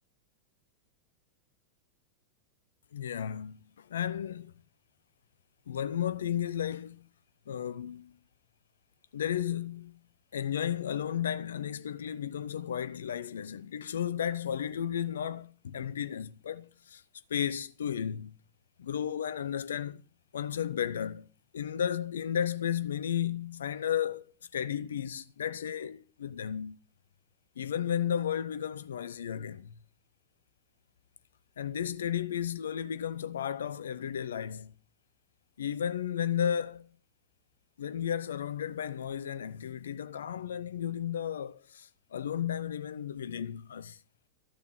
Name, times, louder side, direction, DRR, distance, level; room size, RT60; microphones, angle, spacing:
voice 1, 2.9-4.5 5.7-7.1 7.5-8.2 9.1-10.0 10.3-17.0 17.3-18.3 18.8-20.0 20.3-21.3 21.5-26.8 27.6-29.7 31.6-34.7 35.6-36.9 37.8-44.0, left 9 dB, 70° left, 0.7 m, -33 dB
13.5 x 7.0 x 7.9 m
figure-of-eight pair, 90°, 0 cm